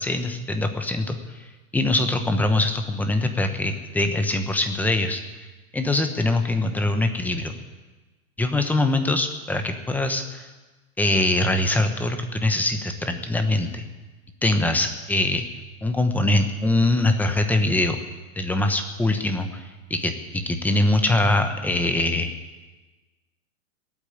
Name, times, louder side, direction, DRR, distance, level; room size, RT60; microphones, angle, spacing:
voice 1, 0.0-5.2 5.7-7.6 8.4-10.5 11.0-13.8 14.4-15.5 15.8-18.0 18.4-22.4, left 2 dB, 5° left, 7 dB, 0.9 m, -23 dB
18.5 x 8.7 x 8.9 m, 1.2 s
hypercardioid pair, 145°, 40 cm